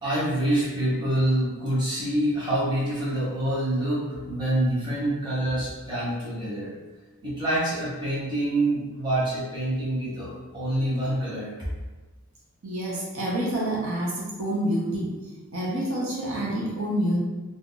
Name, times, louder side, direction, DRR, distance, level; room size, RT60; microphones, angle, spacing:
voice 1, 0.0-6.7 7.2-11.5, right 1 dB, 20° right, -9 dB, 1.0 m, -26 dB
voice 2, 12.6-15.1 15.5-17.2, right 1 dB, 65° right, -6 dB, 0.8 m, -27 dB
2.5 x 2.3 x 3.8 m, 1.2 s
head